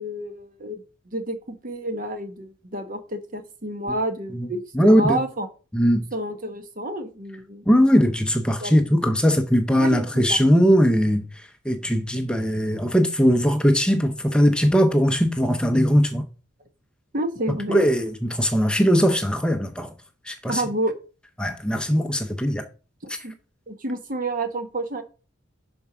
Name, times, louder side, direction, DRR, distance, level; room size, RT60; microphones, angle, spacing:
voice 1, 0.0-5.5 6.1-7.6 8.6-8.7 9.7-10.4 17.1-17.8 20.5-20.9 23.2-23.3 23.7-25.0, right 1 dB, 45° right, 1.1 m, -29 dB
voice 2, 4.7-5.2 5.7-6.0 7.7-11.3 11.7-16.2 17.7-19.9 20.3-20.6 21.4-22.6 23.1-23.2, equal, 5° left, 0.6 m, -20 dB
7.1 x 4.4 x 5.9 m
head